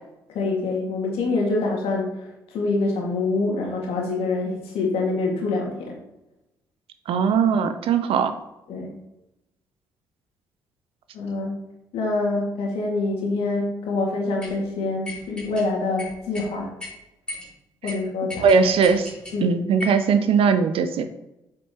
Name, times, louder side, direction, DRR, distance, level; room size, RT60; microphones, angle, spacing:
voice 1, 0.3-2.1 2.5-5.9 8.7-8.9 11.1-11.6 11.9-16.7 17.8-18.5 19.3-19.5, left 3 dB, 65° left, -1 dB, 2.0 m, -25 dB
voice 2, 7.1-8.3 17.8-17.9 18.4-19.1 19.4-21.0, right 6 dB, 60° right, 9 dB, 0.7 m, -19 dB
sound 1, 14.4-14.6 15.0-15.7 16.0-16.5 16.8-16.9 17.3-17.5 17.9-18.0 18.3-19.4 19.8-20.0, left 2 dB, 10° left, 2.7 m, -36 dB
7.6 x 6.1 x 2.9 m, 0.92 s
figure-of-eight pair, 40°, 11 cm